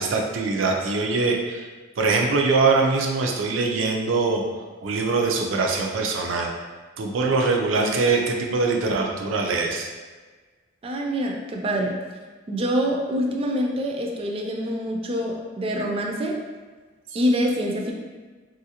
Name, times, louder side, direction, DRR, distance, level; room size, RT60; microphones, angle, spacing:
voice 1, 0.0-1.7 2.0-4.4 4.8-6.5 7.0-9.9, right 3 dB, 90° right, 1 dB, 0.5 m, -23 dB
voice 2, 10.8-12.0 12.5-16.4 17.1-17.9, equal, 30° right, 0 dB, 0.3 m, -25 dB
3.1 x 2.5 x 2.8 m, 1.4 s
head